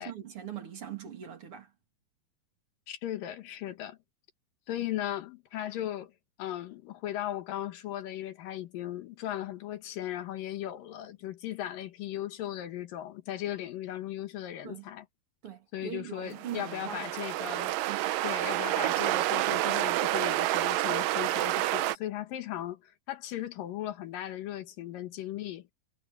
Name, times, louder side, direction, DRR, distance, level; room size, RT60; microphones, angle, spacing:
voice 1, 0.0-1.7 14.6-14.9 15.4-17.1 17.9-18.2, right 9 dB, 40° right, 3.0 m, -41 dB
voice 2, 2.9-4.0 4.7-6.1 6.4-15.1 15.7-17.8 18.2-25.7, left 12 dB, 75° left, 2.9 m, -37 dB
sound 1, 16.3-22.0, right 16 dB, 80° right, 2.3 m, -29 dB
omnidirectional pair, 4.1 m